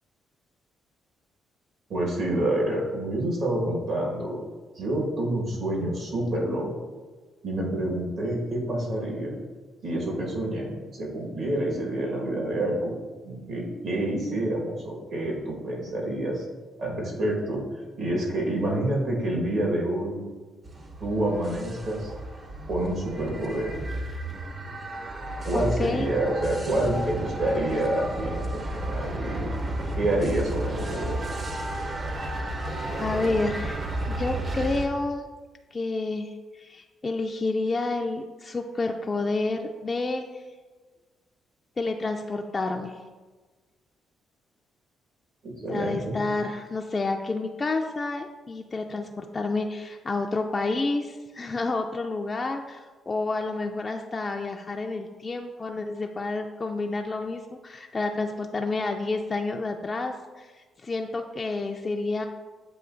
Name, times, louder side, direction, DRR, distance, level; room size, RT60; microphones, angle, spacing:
voice 1, 1.9-4.4 4.7-6.7 7.4-9.3 9.8-12.9 13.2-16.4 16.8-17.6 18.0-20.2 21.0-22.1 22.7-23.8 25.4-29.5 30.0-31.2 45.4-46.2, right 1 dB, 65° right, -2 dB, 1.4 m, -28 dB
sound 1, 20.7-34.9, right 1 dB, 35° right, 0.6 m, -32 dB
voice 2, 25.5-26.1 33.0-35.3 35.7-40.4 41.8-43.0 45.7-62.3, left 3 dB, 30° left, 3 dB, 0.3 m, -29 dB
7.7 x 2.7 x 2.5 m, 1.3 s
cardioid pair, 90°, 0 cm